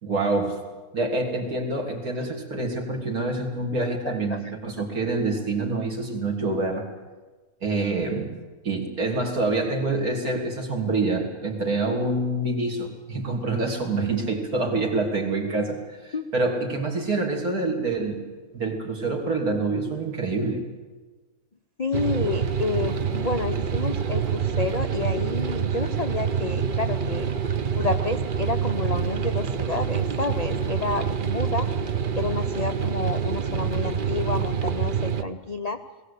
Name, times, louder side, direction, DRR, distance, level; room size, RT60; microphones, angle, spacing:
voice 1, 0.0-0.6 0.9-6.9 7.6-8.3 8.6-18.2 18.5-20.6, right 2 dB, 70° right, 1 dB, 3.4 m, -26 dB
voice 2, 4.0-4.5 16.1-16.2 21.8-27.3 27.7-31.7 32.2-35.8, left 3 dB, 45° left, 7 dB, 0.5 m, -30 dB
sound 1, 21.9-35.2, right 7 dB, 45° right, 0.7 m, -26 dB
20.0 x 17.0 x 8.4 m, 1.3 s
omnidirectional pair, 1.6 m